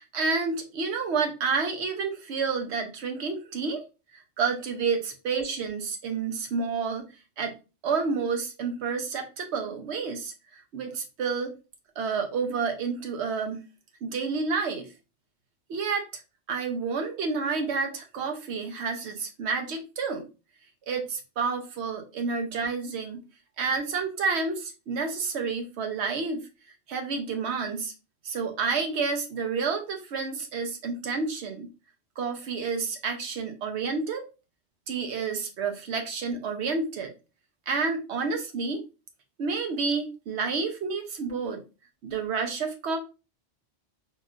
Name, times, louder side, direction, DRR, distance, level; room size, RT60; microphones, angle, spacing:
voice 1, 0.0-3.8 4.1-7.1 7.4-7.5 7.8-11.5 12.0-13.6 14.0-14.9 15.7-16.0 16.5-20.2 20.9-23.2 23.6-26.4 26.9-27.9 28.2-31.7 32.2-34.2 34.9-37.1 37.7-38.8 39.4-41.6 42.0-43.0, right 4 dB, 70° right, 5 dB, 0.9 m, -29 dB
3.5 x 2.3 x 2.4 m, 0.30 s
omnidirectional pair, 1.2 m